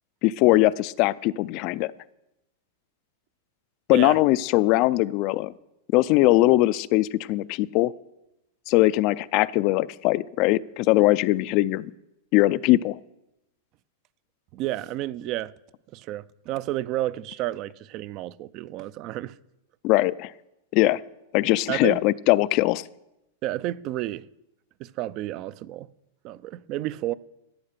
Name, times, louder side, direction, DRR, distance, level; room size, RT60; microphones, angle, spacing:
voice 1, 0.2-1.9 3.9-5.5 5.9-7.9 8.7-11.9 12.3-13.0 19.8-20.3 20.7-21.0 21.3-22.8, left 18 dB, 40° left, 0.4 m, -21 dB
voice 2, 14.5-15.5 15.9-19.4 21.7-22.0 23.4-24.3 24.8-25.9 26.2-27.1, right 15 dB, 35° right, 0.4 m, -31 dB
14.0 x 8.7 x 6.7 m
supercardioid pair, 155°, 0 cm